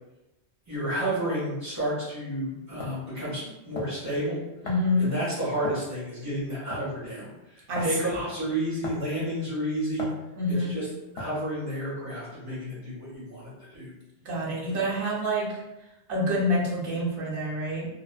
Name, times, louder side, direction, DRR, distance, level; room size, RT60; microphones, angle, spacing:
voice 1, 0.7-4.4 5.0-10.1 10.6-10.9 11.1-13.9, right 1 dB, 15° right, -11 dB, 1.5 m, -31 dB
sound 1, 2.1-2.2 2.8-3.0 3.7-4.0 4.7-4.9 5.6-5.9 6.7-7.0 7.8-8.0 8.8-9.1 10.0-10.2 11.2-11.5, left 2 dB, 70° left, 0.8 m, -37 dB
voice 2, 4.6-5.1 7.7-7.9 10.4-10.7 14.2-15.5 16.1-17.9, left 1 dB, 60° right, -4 dB, 0.9 m, -27 dB
2.5 x 2.2 x 2.3 m, 0.97 s
omnidirectional pair, 1.1 m